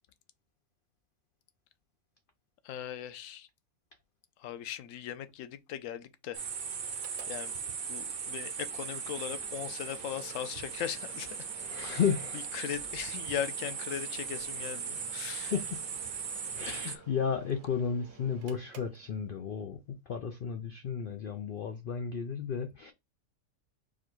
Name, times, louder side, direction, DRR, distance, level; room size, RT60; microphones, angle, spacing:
voice 1, 2.6-3.5 4.4-6.5 7.3-7.5 7.9-11.5 11.8-12.0 12.3-15.5 16.7-17.0, left 10 dB, 70° left, 0.9 m, -39 dB
sound 1, 6.3-17.0, right 6 dB, 50° right, 0.7 m, -38 dB
Mechanical fan, 6.8-19.7, right 7 dB, 75° right, 1.2 m, -55 dB
voice 2, 11.6-12.5 15.4-15.8 16.5-19.8 20.1-22.9, left 6 dB, 85° left, 0.4 m, -33 dB
4.7 x 2.2 x 4.4 m
omnidirectional pair, 1.5 m